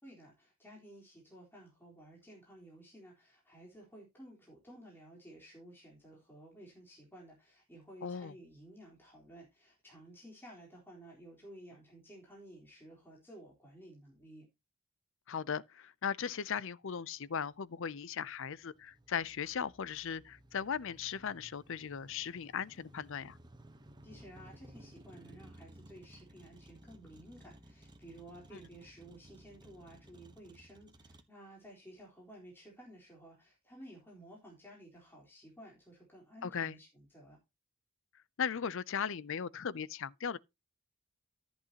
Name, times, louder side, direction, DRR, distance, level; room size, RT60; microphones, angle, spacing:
voice 1, 0.0-14.5 24.0-37.4, right 1 dB, 10° left, 4.0 m, -54 dB
voice 2, 8.0-8.3 15.3-23.4 36.4-36.7 38.4-40.4, left 7 dB, 60° left, 0.5 m, -38 dB
Motor vehicle (road), 17.2-31.2, right 1 dB, 20° right, 1.2 m, -58 dB
14.0 x 8.2 x 2.9 m
head